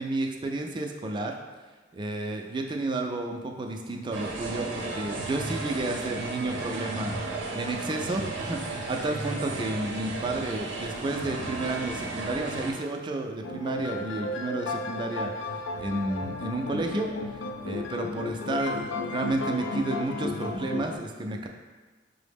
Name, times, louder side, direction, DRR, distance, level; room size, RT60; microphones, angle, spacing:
voice 1, 0.0-1.4 1.9-7.2 7.5-17.1 17.6-21.5, right 2 dB, 25° right, 2 dB, 0.3 m, -31 dB
sound 1, 4.1-12.7, right 2 dB, 85° right, 0.6 m, -34 dB
sound 2, 13.4-21.0, left 3 dB, 85° left, 0.3 m, -34 dB
5.5 x 2.0 x 3.4 m, 1.3 s
head